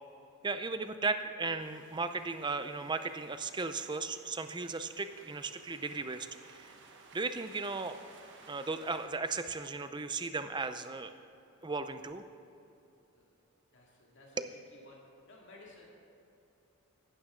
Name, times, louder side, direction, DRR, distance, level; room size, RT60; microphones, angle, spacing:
voice 1, 0.4-6.7 7.1-8.0 8.5-11.1 11.6-12.2 14.4-14.5, right 3 dB, 20° right, 9 dB, 0.5 m, -36 dB
sound 1, 1.6-9.1, right 4 dB, 55° right, 1.3 m, -57 dB
voice 2, 13.7-15.0 15.3-15.9, left 2 dB, 55° left, -3 dB, 2.3 m, -56 dB
16.0 x 12.0 x 3.8 m, 2.8 s
head